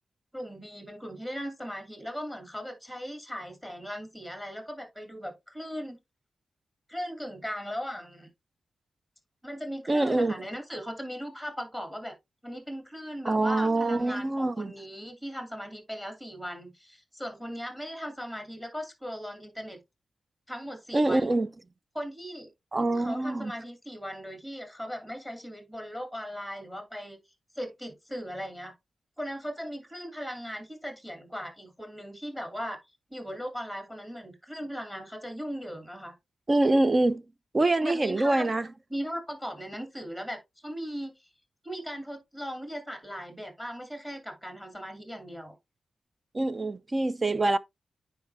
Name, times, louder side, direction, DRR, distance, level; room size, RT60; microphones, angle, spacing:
voice 1, 0.3-6.0 6.9-8.3 9.4-12.2 12.4-19.8 20.5-21.3 21.9-22.5 22.9-27.2 27.6-28.7 29.2-32.8 33.1-36.1 37.8-38.5 38.9-41.1 41.6-45.5, equal, 5° right, 2.6 m, -38 dB
voice 2, 9.9-10.3 13.2-14.7 20.9-21.5 22.7-23.5 36.5-37.2 37.5-38.7 46.3-47.6, right 2 dB, 30° right, 0.7 m, -25 dB
9.4 x 4.2 x 3.4 m
wide cardioid pair, 90°, 0 cm